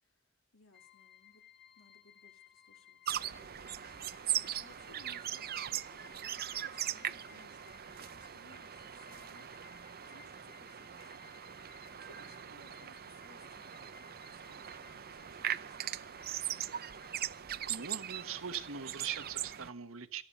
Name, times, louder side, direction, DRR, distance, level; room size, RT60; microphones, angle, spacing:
voice 1, 0.5-1.4 1.8-11.4 11.9-16.8, left 2 dB, 75° left, 5 dB, 3.0 m, -63 dB
sound 1, 0.7-17.4, left 10 dB, 50° left, 2.6 m, -61 dB
sound 2, 3.1-19.7, right 10 dB, 50° right, 0.7 m, -40 dB
voice 2, 17.7-20.2, right 7 dB, 70° right, 10 dB, 1.4 m, -41 dB
18.0 x 14.5 x 5.4 m, 0.42 s
head